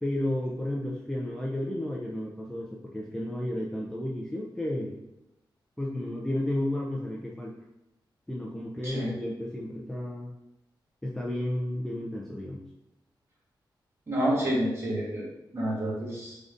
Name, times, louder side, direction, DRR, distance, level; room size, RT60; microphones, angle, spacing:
voice 1, 0.0-5.0 5.8-7.5 8.3-10.3 11.0-12.6, left 1 dB, 5° left, -4 dB, 0.4 m, -32 dB
voice 2, 14.1-15.3 15.5-16.4, equal, 30° right, -6 dB, 1.4 m, -29 dB
3.8 x 3.4 x 2.5 m, 0.88 s
wide cardioid pair, 140°, 8 cm